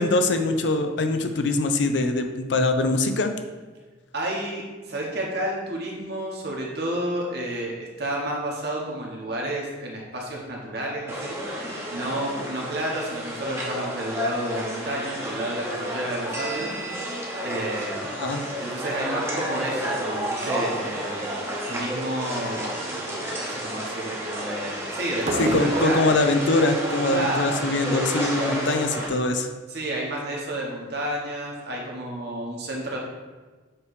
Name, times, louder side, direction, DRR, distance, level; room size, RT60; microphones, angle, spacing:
voice 1, 0.0-3.3 18.1-18.4 25.4-29.5, left 2 dB, 65° left, 6 dB, 0.6 m, -23 dB
voice 2, 4.1-17.1 17.4-18.1 18.6-26.1 27.1-27.5 29.7-33.0, right 1 dB, 55° right, -2 dB, 1.4 m, -31 dB
sound 1, 11.1-29.1, equal, 15° right, 1.0 m, -31 dB
sound 2, 19.7-20.1 20.4-20.9 21.5-21.9 22.3-22.6 25.2-26.0, right 3 dB, 35° right, 0.4 m, -31 dB
7.4 x 3.3 x 4.8 m, 1.3 s
head